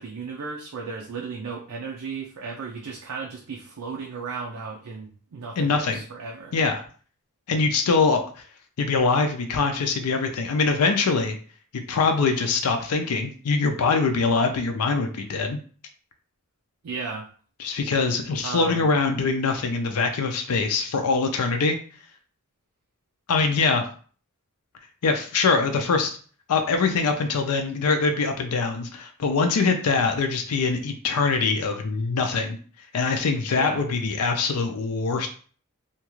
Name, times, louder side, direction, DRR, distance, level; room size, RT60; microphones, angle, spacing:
voice 1, 0.0-6.5 16.8-17.3 18.4-18.9 33.5-33.8, right 4 dB, 85° right, -1 dB, 0.5 m, -35 dB
voice 2, 5.6-6.0 6.5-6.8 7.5-8.2 8.8-11.3 11.7-15.6 17.6-21.8 23.3-23.8 25.0-26.2 26.5-32.6 32.9-35.3, left 4 dB, 80° left, 5 dB, 0.5 m, -23 dB
2.8 x 2.3 x 3.0 m, 0.43 s
head